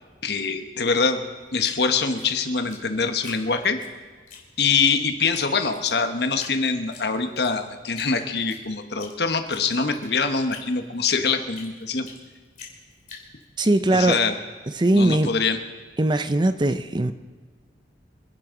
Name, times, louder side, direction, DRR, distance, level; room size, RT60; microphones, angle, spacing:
voice 1, 0.2-1.2 1.5-3.8 4.6-12.1 13.9-14.3 14.9-15.6, left 4 dB, 65° left, 7 dB, 1.3 m, -24 dB
Drip, 1.6-3.9 4.3-4.9 5.3-5.4 5.7-6.6 6.9-7.5 7.9-9.1 9.5-12.2 12.6-14.2, left 6 dB, 45° left, 3.0 m, -43 dB
voice 2, 13.6-14.2 14.8-15.3 16.0-17.1, right 1 dB, 25° right, 11 dB, 0.5 m, -20 dB
28.0 x 11.0 x 3.9 m, 1.5 s
head